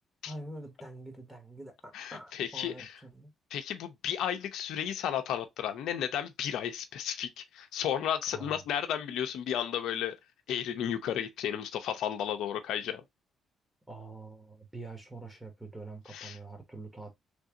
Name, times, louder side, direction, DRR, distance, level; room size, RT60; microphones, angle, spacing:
voice 1, 0.3-3.3 8.3-8.7 13.9-17.1, right 2 dB, 5° right, 1.3 m, -45 dB
voice 2, 1.9-2.9 3.5-10.2 10.5-13.0 16.1-16.4, left 9 dB, 80° left, 0.5 m, -33 dB
3.2 x 2.6 x 3.7 m
cardioid pair, 90°, 0 cm